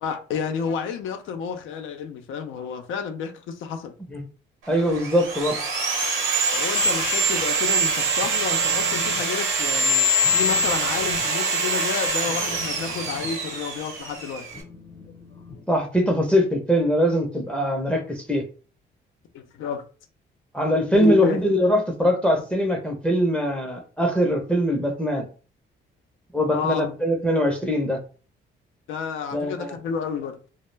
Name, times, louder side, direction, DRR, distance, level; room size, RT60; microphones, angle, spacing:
voice 1, 0.0-3.9 6.5-14.5 19.3-19.8 20.9-21.4 26.5-27.0 28.9-30.4, left 6 dB, 80° left, 0.5 m, -30 dB
voice 2, 4.7-5.6 15.7-18.4 20.5-25.3 26.3-28.0 29.3-29.8, equal, 5° left, 0.5 m, -22 dB
Sawing, 4.7-14.6, right 2 dB, 80° right, 0.8 m, -24 dB
Telephone, 8.2-9.2 9.6-9.9 10.2-16.3, left 6 dB, 40° left, 0.7 m, -44 dB
2.2 x 2.0 x 3.1 m
cardioid pair, 90°, 20 cm